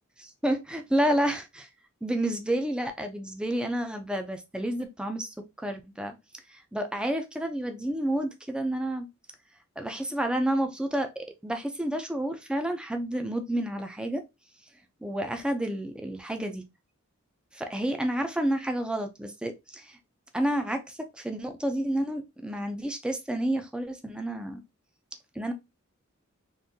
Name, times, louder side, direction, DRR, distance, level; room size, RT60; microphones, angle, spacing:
voice 1, 0.4-1.7 2.0-6.1 6.5-9.1 9.8-14.2 15.0-16.6 17.5-20.0 20.3-24.6 25.4-25.5, right 1 dB, 5° right, 0.4 m, -30 dB
3.7 x 2.6 x 2.6 m
head